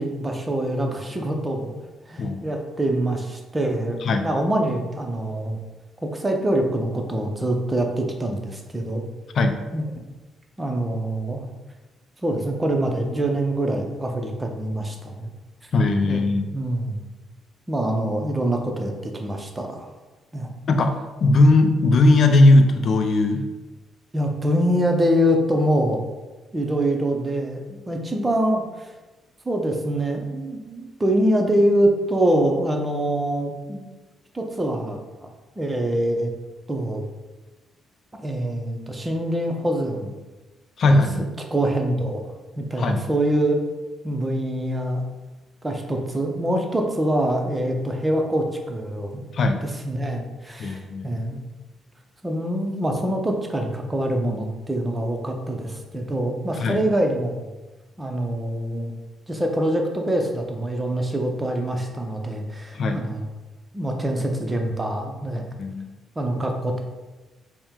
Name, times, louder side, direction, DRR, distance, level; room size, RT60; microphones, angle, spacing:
voice 1, 0.0-1.8 2.1-5.6 6.0-9.0 9.7-9.8 10.6-11.5 12.2-15.3 16.0-16.2 16.5-17.0 17.7-19.9 20.3-20.5 24.1-26.0 26.5-28.9 29.4-33.8 34.3-35.3 35.6-36.3 36.7-37.0 38.2-40.1 40.8-41.0 41.5-42.2 42.6-43.6 44.0-45.0 45.6-49.2 49.6-51.4 52.2-57.5 58.0-58.9 59.3-63.2 63.7-65.4 66.2-66.8, right 1 dB, 15° right, 2 dB, 0.6 m, -24 dB
voice 2, 15.7-16.5 20.7-23.5 40.8-41.2 42.8-43.0 49.3-49.6 50.6-51.2 56.6-56.8 62.7-63.0 65.6-65.9, left 2 dB, 55° left, 6 dB, 0.4 m, -18 dB
4.3 x 2.1 x 3.6 m, 1.2 s
cardioid pair, 90°, 0 cm